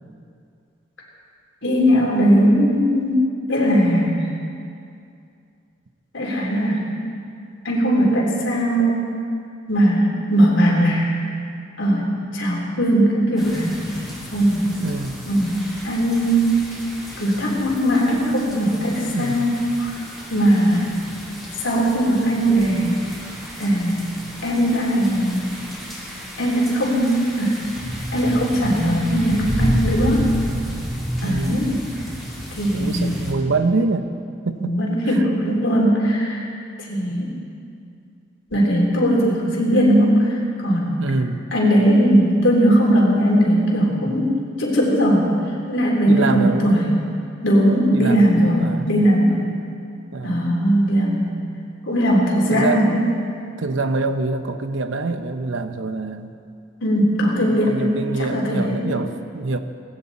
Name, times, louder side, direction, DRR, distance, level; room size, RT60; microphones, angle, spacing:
voice 1, 1.6-4.3 6.1-6.9 7.6-9.1 9.7-11.2 11.8-13.8 14.3-14.7 15.3-15.6 15.8-16.6 17.2-20.0 20.3-20.9 21.6-22.9 23.6-24.1 24.4-25.6 26.4-27.6 28.1-30.3 31.2-31.8 32.5-33.2 34.5-36.5 36.9-37.3 38.5-40.3 40.6-41.0 41.5-45.3 45.7-46.9 47.4-49.4 50.2-51.4 51.9-53.0 56.8-57.9 58.2-58.9, equal, 90° left, -2 dB, 3.7 m, -19 dB
sound 1, 13.4-33.3, equal, ahead, 3.6 m, -31 dB
voice 2, 14.8-15.2 19.1-19.5 31.2-31.6 32.7-34.1 34.4-34.7 35.1-35.3 41.0-41.4 46.1-47.0 47.9-48.9 50.1-50.5 52.5-52.9 53.6-56.3 57.4-59.6, right 3 dB, 85° right, 9 dB, 0.9 m, -25 dB
18.5 x 16.0 x 4.3 m, 2.4 s
head